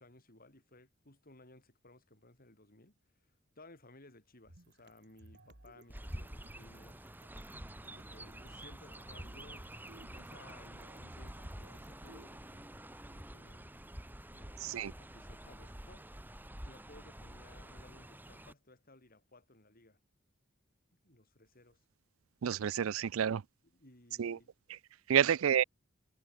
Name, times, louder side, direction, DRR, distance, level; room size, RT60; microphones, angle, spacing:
voice 1, 0.0-7.1 8.1-13.7 14.3-16.3 16.6-20.0 21.0-21.8 23.7-24.5 25.1-25.3, left 2 dB, 45° left, 4.9 m, -60 dB
sound 1, 4.5-12.3, right 1 dB, 55° right, 2.7 m, -59 dB
Chirp tweet, 5.9-18.5, right 1 dB, 10° right, 2.2 m, -48 dB
voice 2, 14.6-14.9 22.4-23.4 24.2-24.4 25.1-25.6, right 8 dB, 80° right, 0.4 m, -29 dB
head